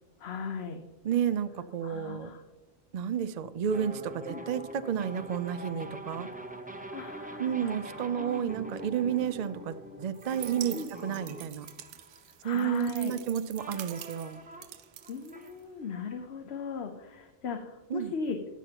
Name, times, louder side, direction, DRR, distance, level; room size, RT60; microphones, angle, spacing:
voice 1, 0.2-0.8 1.8-2.4 4.3-4.4 6.7-8.5 10.7-10.9 12.4-13.2 15.1-18.4, left 5 dB, 65° left, 5 dB, 1.0 m, -38 dB
voice 2, 1.0-2.3 2.9-6.3 7.4-11.7 12.4-14.4 17.9-18.1, right 8 dB, 60° right, 12 dB, 0.4 m, -31 dB
sound 1, 3.7-12.9 13.6-16.3, right 1 dB, 10° right, 0.6 m, -44 dB
sound 2, 10.1-15.9, right 12 dB, 85° right, 0.9 m, -46 dB
20.0 x 7.2 x 2.9 m, 1.2 s
omnidirectional pair, 1.2 m